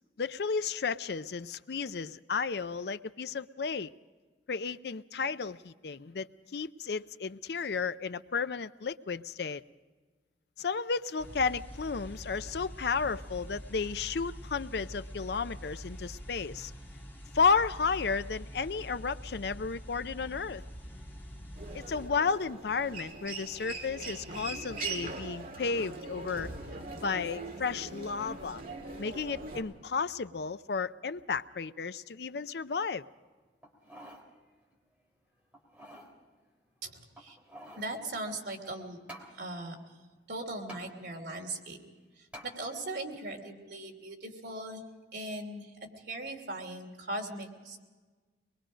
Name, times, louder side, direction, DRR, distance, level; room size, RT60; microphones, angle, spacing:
voice 1, 0.2-3.9 4.5-9.6 10.6-16.7 17.3-20.6 21.7-26.5 27.0-28.6 29.0-33.0, left 5 dB, 65° left, 0.5 m, -33 dB
sound 1, 11.2-22.1, equal, 10° left, 2.2 m, -45 dB
Human voice, 21.5-29.6, right 3 dB, 50° right, 2.1 m, -41 dB
sound 2, 33.6-34.3 34.7-34.8 35.5-36.1 37.1-37.9 39.1-39.3 40.7-40.9 42.3-42.5 43.1-43.2, right 1 dB, 5° right, 3.3 m, -48 dB
voice 2, 36.8-37.4 37.8-39.0 39.4-39.8 40.3-41.8 42.2-44.8 45.1-45.7 46.0-47.8, right 2 dB, 70° right, 3.0 m, -39 dB
23.5 x 21.5 x 5.1 m
head